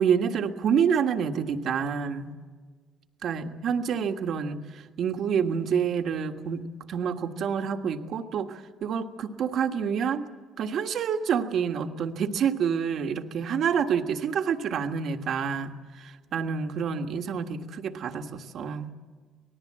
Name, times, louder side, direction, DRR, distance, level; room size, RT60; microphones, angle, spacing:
voice 1, 0.0-2.3 3.2-10.2 10.6-18.9, right 7 dB, 55° right, 6 dB, 1.6 m, -28 dB
25.5 x 19.5 x 7.6 m, 1.5 s
cardioid pair, 155°, 0 cm